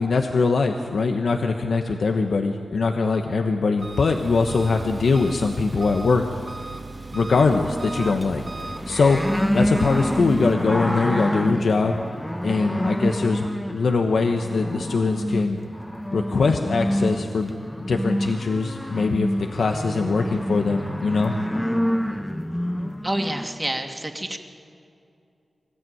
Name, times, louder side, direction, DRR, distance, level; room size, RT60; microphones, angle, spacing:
voice 1, 0.0-6.3 7.1-8.4 8.8-9.2 9.5-12.0 12.4-15.6 16.1-17.5 17.8-21.3, left 4 dB, 75° left, 4 dB, 1.1 m, -22 dB
Engine, 3.8-10.5, right 2 dB, 40° right, 2.4 m, -36 dB
sound 1, 7.4-23.4, equal, 10° left, 1.4 m, -27 dB
voice 2, 23.0-24.4, right 1 dB, 15° right, 4 dB, 2.5 m, -28 dB
25.5 x 14.0 x 9.3 m, 2.6 s
cardioid pair, 50°, 0 cm